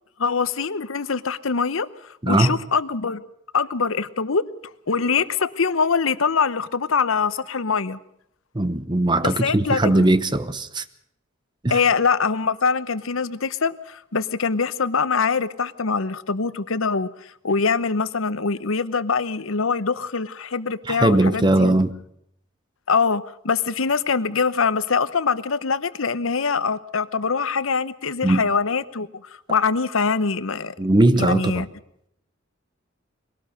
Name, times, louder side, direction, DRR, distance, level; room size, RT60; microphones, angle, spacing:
voice 1, 0.2-3.2 3.5-4.5 4.9-8.0 9.4-9.9 11.7-21.8 22.9-29.1 29.5-30.7 31.3-31.7, left 5 dB, 85° left, 0.9 m, -23 dB
voice 2, 2.2-2.6 8.5-10.8 11.6-11.9 20.8-21.9 28.2-28.5 30.8-31.6, right 1 dB, 20° right, 0.9 m, -19 dB
22.0 x 18.0 x 6.6 m
head